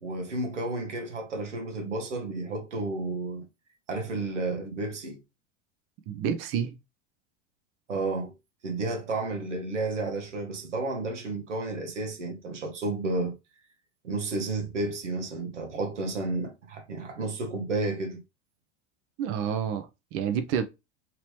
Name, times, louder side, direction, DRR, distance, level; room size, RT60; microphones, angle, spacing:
voice 1, 0.0-3.4 3.9-5.2 7.9-8.3 8.6-13.3 14.0-18.2, right 2 dB, 85° right, 1.1 m, -32 dB
voice 2, 6.1-6.8 19.2-20.6, right 8 dB, 40° right, 0.6 m, -29 dB
2.9 x 2.9 x 3.1 m
hypercardioid pair, 85°, 35 cm